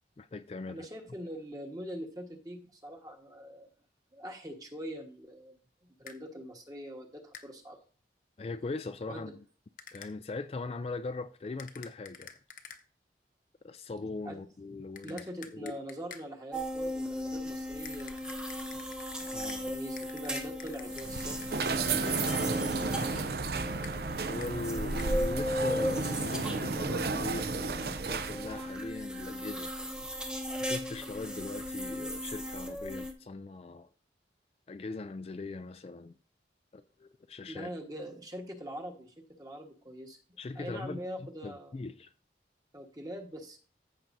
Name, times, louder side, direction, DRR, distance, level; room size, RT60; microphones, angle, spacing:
voice 1, 0.2-0.9 8.4-9.4 9.9-12.4 13.6-15.3 15.5-15.8 19.3-19.7 24.3-29.7 30.6-33.9 34.7-36.1 36.7-37.7 40.4-42.1, left 3 dB, 35° left, 0.3 m, -40 dB
voice 2, 0.7-3.7 4.1-5.6 5.8-7.8 9.1-9.3 14.2-14.5 15.0-18.2 19.2-23.3 37.5-40.2 40.5-41.7 42.7-43.6, equal, 20° right, 1.3 m, -43 dB
sound 1, 6.1-6.2 7.3-7.5 9.8-10.1 11.6-12.8 15.0-16.3 17.8-19.6 20.0-21.7 23.8-24.0 24.4-24.5 25.0-25.1, left 6 dB, 50° left, 0.8 m, -49 dB
sound 2, 16.5-33.1, left 1 dB, 5° right, 0.9 m, -37 dB
sound 3, 20.9-28.7, right 4 dB, 60° right, 0.6 m, -33 dB
14.5 x 5.9 x 2.7 m
head